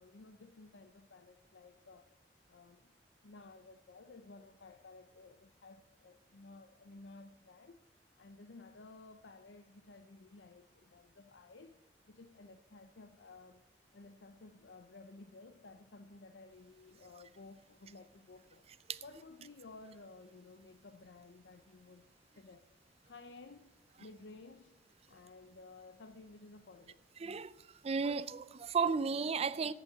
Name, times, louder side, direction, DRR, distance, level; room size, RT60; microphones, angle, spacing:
voice 1, 0.0-2.1 2.5-3.0 3.2-7.8 8.2-11.8 12.1-13.6 13.9-18.7 19.0-22.1 22.3-22.7 23.0-27.0, left 3 dB, 80° left, 0.6 m, -55 dB
voice 2, 27.2-29.7, right 5 dB, 35° right, 0.4 m, -34 dB
8.5 x 8.1 x 8.9 m
head